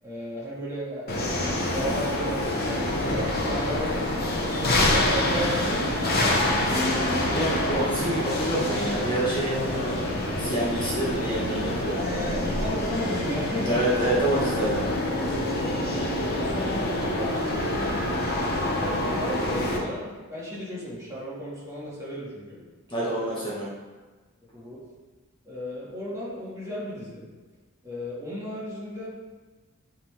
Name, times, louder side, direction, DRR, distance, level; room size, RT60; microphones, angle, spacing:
voice 1, 0.0-4.3 4.5-6.1 7.1-7.2 11.9-14.0 15.6-16.0 16.2-22.6 23.0-23.3 24.5-24.8 25.4-27.3 27.8-29.1, equal, 15° right, -7 dB, 1.9 m, -34 dB
sound 1, 1.1-19.8, left 1 dB, 45° left, 1.1 m, -26 dB
voice 2, 6.7-10.0 10.4-12.0 13.6-14.8 22.9-23.6, right 1 dB, 20° left, -8 dB, 1.3 m, -27 dB
9.7 x 3.8 x 3.5 m, 1.3 s
head